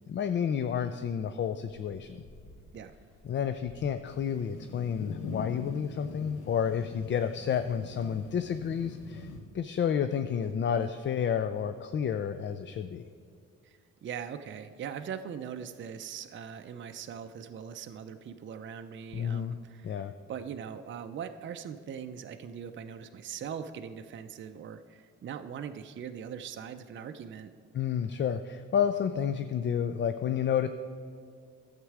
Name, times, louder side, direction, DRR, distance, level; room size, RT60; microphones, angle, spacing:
voice 1, 0.1-2.2 3.2-9.3 9.5-13.0 19.1-19.6 19.8-20.1 27.7-30.7, left 8 dB, 40° left, 10 dB, 0.4 m, -30 dB
sound 1, 1.9-4.9 5.2-5.8 6.0-6.1 6.3-6.5, left 1 dB, 70° left, 2.4 m, -56 dB
sound 2, 4.1-9.4, left 3 dB, 90° left, 1.0 m, -43 dB
voice 2, 13.6-27.5, right 7 dB, 40° right, 7 dB, 0.5 m, -41 dB
11.5 x 7.4 x 4.8 m, 2.3 s
cardioid pair, 90°, 30 cm